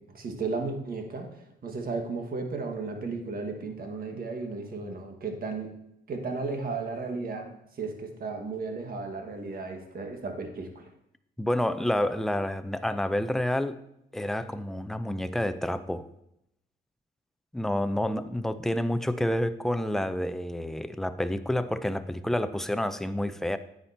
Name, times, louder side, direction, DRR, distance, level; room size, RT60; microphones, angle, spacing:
voice 1, 0.1-5.7 6.1-7.5 7.8-10.8, right 3 dB, 50° right, 4 dB, 1.7 m, -34 dB
voice 2, 11.4-13.8 14.1-16.1 17.5-23.6, left 1 dB, ahead, 11 dB, 0.5 m, -29 dB
9.7 x 8.9 x 2.8 m, 0.79 s
cardioid pair, 90°, 20 cm